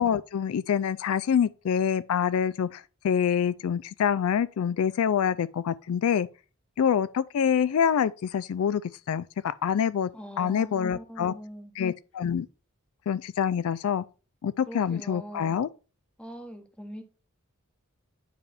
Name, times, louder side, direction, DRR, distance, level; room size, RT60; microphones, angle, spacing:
voice 1, 0.0-6.3 6.8-8.8 9.1-10.1 10.4-11.3 11.8-12.5 13.1-14.0 14.4-15.7, left 8 dB, 75° left, 0.3 m, -26 dB
voice 2, 10.1-11.7 14.7-15.6 16.2-17.0, equal, 5° left, 1.0 m, -42 dB
9.3 x 3.4 x 4.2 m
head